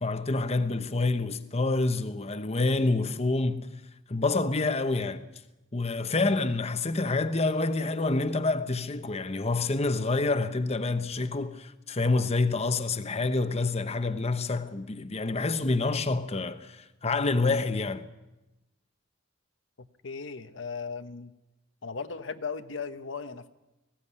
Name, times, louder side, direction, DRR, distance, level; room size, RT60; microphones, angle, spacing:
voice 1, 0.0-3.7 4.1-5.2 5.7-18.0, left 3 dB, 35° left, 1.0 m, -27 dB
voice 2, 20.0-21.3 21.8-23.5, left 5 dB, 80° left, 1.1 m, -37 dB
20.5 x 16.0 x 9.8 m
head